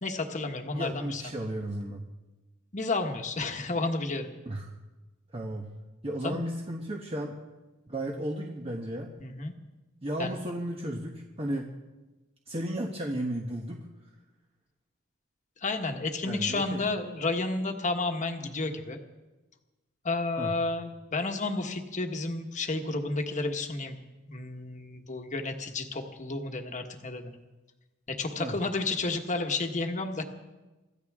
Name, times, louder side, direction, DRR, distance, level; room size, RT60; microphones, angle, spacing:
voice 1, 0.0-1.2 2.7-4.3 6.2-6.5 9.2-9.5 10.2-10.4 15.6-19.0 20.0-24.0 24.3-27.3 28.1-30.2, left 3 dB, 35° left, 5 dB, 1.4 m, -31 dB
voice 2, 0.7-2.1 4.4-4.7 5.3-5.7 6.0-7.4 7.9-9.1 10.0-11.6 12.5-13.9 16.3-16.8 20.4-20.6 28.4-28.5, right 1 dB, 30° right, 1 dB, 1.2 m, -34 dB
24.5 x 14.5 x 3.7 m, 1.1 s
head